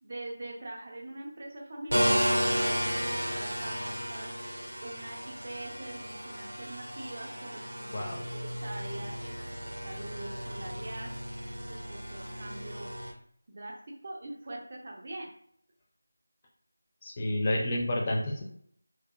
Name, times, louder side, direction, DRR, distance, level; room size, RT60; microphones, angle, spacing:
voice 1, 0.0-11.1 11.7-12.9 13.5-15.3, right 2 dB, 35° right, -1 dB, 0.5 m, -43 dB
sound 1, 1.9-13.1, equal, 80° right, 0.6 m, -33 dB
voice 2, 7.9-8.2 17.0-18.4, left 1 dB, 20° left, 0 dB, 0.4 m, -30 dB
2.7 x 2.2 x 2.2 m, 0.65 s
figure-of-eight pair, 165°, 0 cm